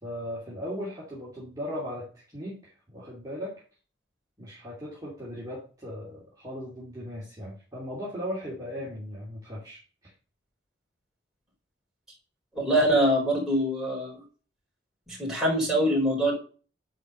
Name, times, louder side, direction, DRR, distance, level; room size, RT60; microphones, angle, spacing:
voice 1, 0.0-3.5 4.4-10.1, equal, 20° right, -7 dB, 2.7 m, -38 dB
voice 2, 12.5-14.2 15.1-16.3, equal, ahead, -4 dB, 4.2 m, -24 dB
9.7 x 4.7 x 6.6 m, 0.38 s
head